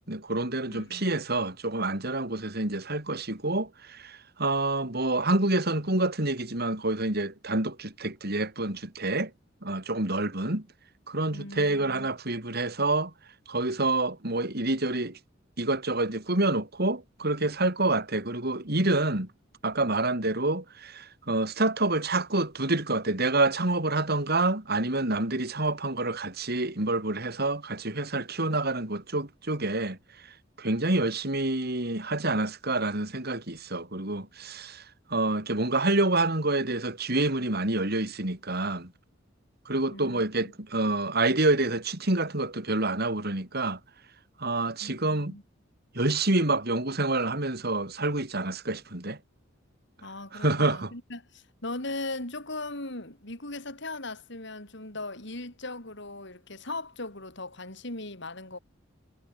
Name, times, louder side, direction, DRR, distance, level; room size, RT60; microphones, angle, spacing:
voice 1, 0.0-9.3 9.6-10.6 11.1-13.1 13.5-15.2 15.6-19.3 19.6-30.0 30.6-34.8 35.1-38.9 39.7-43.8 44.4-45.3 45.9-49.2 50.3-50.9, right 2 dB, 55° right, 4.5 m, -27 dB
voice 2, 0.7-1.1 11.3-12.1 39.9-40.5 44.8-45.4 50.0-58.6, left 2 dB, 65° left, 6.6 m, -39 dB
head